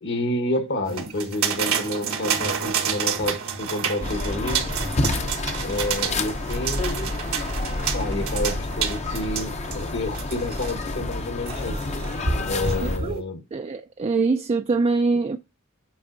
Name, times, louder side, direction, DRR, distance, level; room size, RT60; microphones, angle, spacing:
voice 1, 0.0-4.7 5.6-6.9 7.8-11.8 12.5-13.4, left 1 dB, 55° left, 1.3 m, -29 dB
sound 1, 0.9-10.8 11.5-13.2, right 6 dB, 80° right, 1.4 m, -29 dB
sound 2, 4.0-13.0, left 2 dB, 30° left, 0.7 m, -29 dB
voice 2, 12.8-13.2 13.5-15.4, right 3 dB, 30° right, 0.3 m, -24 dB
8.7 x 5.0 x 2.6 m
head